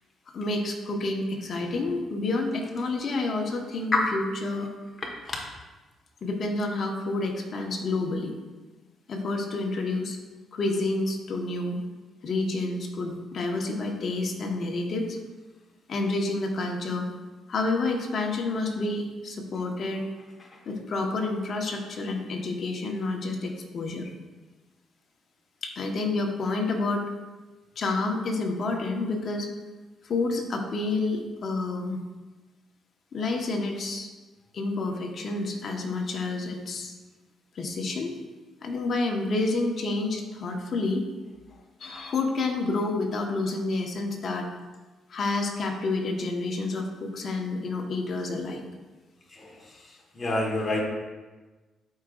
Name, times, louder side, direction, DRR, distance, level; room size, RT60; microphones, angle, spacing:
voice 1, 0.3-4.7 6.2-8.3 9.1-10.2 10.5-11.8 12.2-15.2 15.9-17.1 17.5-20.0 20.6-24.1 25.6-27.0 27.8-29.5 30.0-32.0 33.1-34.1 34.5-36.9 37.5-38.1 38.6-41.1 41.8-44.5 45.1-48.6, left 2 dB, 55° left, 2 dB, 1.2 m, -29 dB
voice 2, 50.2-50.8, left 2 dB, 30° left, -2 dB, 1.4 m, -26 dB
11.5 x 4.9 x 2.5 m, 1.2 s
cardioid pair, 90°, 0 cm